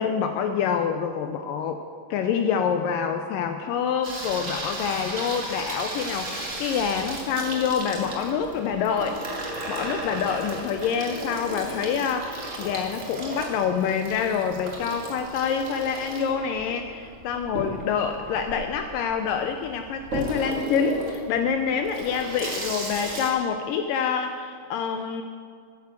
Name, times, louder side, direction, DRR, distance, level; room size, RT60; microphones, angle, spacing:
voice 1, 0.0-1.8 2.1-9.2 9.7-25.2, left 7 dB, 80° left, 6 dB, 2.0 m, -26 dB
Water tap faucet / Sink (filling or washing), 4.0-23.3, right 1 dB, 55° right, 0.8 m, -35 dB
9.5 x 9.4 x 7.3 m, 2.2 s
omnidirectional pair, 4.5 m